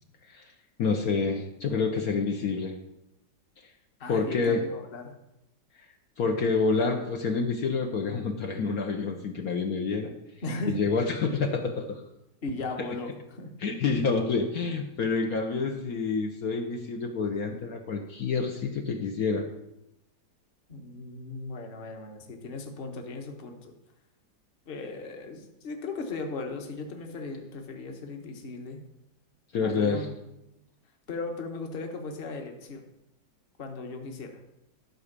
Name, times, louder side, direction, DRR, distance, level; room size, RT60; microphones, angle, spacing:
voice 1, 0.8-2.8 4.1-4.6 6.2-10.1 10.7-12.0 13.6-19.4 29.5-30.1, left 4 dB, 65° left, 2 dB, 1.3 m, -28 dB
voice 2, 4.0-5.1 10.4-10.8 12.4-13.5 20.7-23.7 24.7-28.8 29.6-30.2 31.1-32.8 33.6-34.4, left 3 dB, 35° left, 4 dB, 1.3 m, -37 dB
12.0 x 4.9 x 6.7 m, 0.87 s
omnidirectional pair, 1.8 m